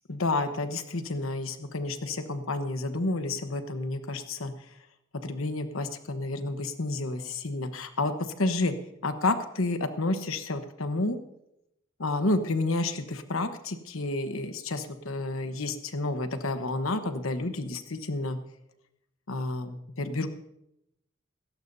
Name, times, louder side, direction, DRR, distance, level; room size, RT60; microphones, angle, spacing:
voice 1, 0.1-4.5 5.2-8.7 9.0-11.2 12.0-18.4 19.3-20.3, left 2 dB, 70° left, 8 dB, 1.1 m, -30 dB
17.5 x 16.5 x 2.7 m, 0.82 s
head